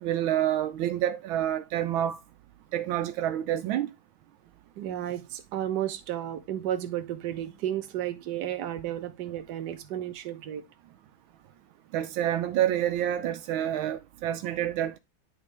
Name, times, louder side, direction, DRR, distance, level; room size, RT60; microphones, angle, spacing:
voice 1, 0.0-2.2 2.7-3.9 11.9-15.0, right 11 dB, 85° right, 1.4 m, -28 dB
voice 2, 4.8-10.6, right 11 dB, 60° right, 1.4 m, -33 dB
10.5 x 3.6 x 3.3 m
omnidirectional pair, 2.2 m